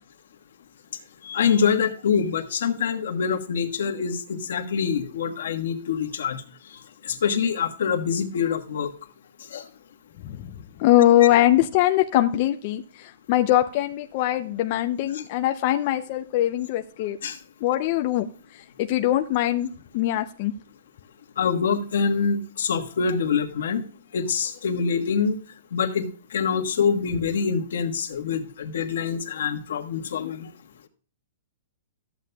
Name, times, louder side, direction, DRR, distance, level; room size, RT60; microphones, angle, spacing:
voice 1, 1.2-6.4 7.0-8.9 9.5-9.6 11.2-11.3 15.1-15.2 17.2-17.4 21.4-23.8 24.1-25.4 25.7-30.5, left 6 dB, 75° left, 5 dB, 1.4 m, -25 dB
voice 2, 10.8-17.2 17.6-18.3 18.8-20.5, left 13 dB, 35° left, 6 dB, 0.5 m, -22 dB
14.0 x 8.3 x 2.2 m, 0.41 s
hypercardioid pair, 170°, 0 cm